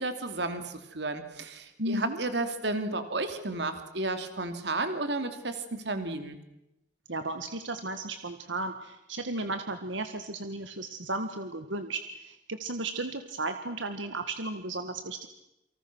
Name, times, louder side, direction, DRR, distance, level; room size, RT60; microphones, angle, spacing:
voice 1, 0.0-6.4, right 2 dB, 65° right, 8 dB, 3.0 m, -32 dB
voice 2, 1.8-2.2 7.1-15.3, right 2 dB, 90° right, 8 dB, 1.8 m, -34 dB
29.0 x 25.0 x 6.3 m, 0.85 s
head